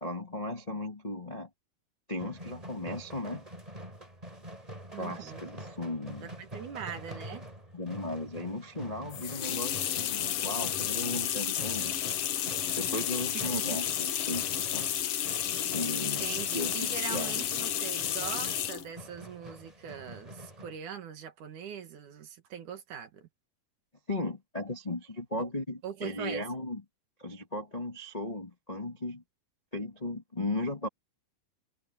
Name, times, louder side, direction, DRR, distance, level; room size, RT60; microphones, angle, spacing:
voice 1, 0.0-1.5 2.1-3.4 4.9-6.3 7.7-12.0 12.8-14.8 15.7-16.2 16.5-17.4 24.1-26.8 27.2-29.2 29.7-30.9, left 1 dB, 40° left, 0.5 m, -36 dB
sound 1, 2.2-20.8, equal, 10° right, 5.7 m, -46 dB
voice 2, 4.9-5.4 6.2-7.4 13.3-13.8 15.9-23.3 25.4-25.5 25.8-26.4, right 8 dB, 60° right, 3.0 m, -41 dB
sound 2, 9.1-18.9, left 10 dB, 70° left, 1.4 m, -32 dB
omnidirectional pair, 4.2 m